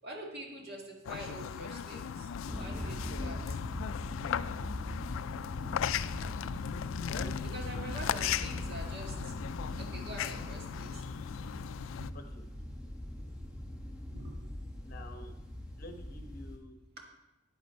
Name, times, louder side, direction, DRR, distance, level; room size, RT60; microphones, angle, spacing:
voice 1, 0.0-3.6 7.5-9.3 9.8-11.0 12.0-12.2 14.1-14.5 17.0-17.1, right 1 dB, 50° right, -1 dB, 1.9 m, -45 dB
sound 1, 1.0-12.1, left 8 dB, 70° left, 0.3 m, -37 dB
sound 2, 2.5-16.6, left 1 dB, 5° right, 1.0 m, -42 dB
voice 2, 14.8-15.3 15.8-16.8, left 1 dB, 45° left, 6 dB, 1.0 m, -47 dB
9.5 x 8.4 x 4.3 m, 0.97 s
head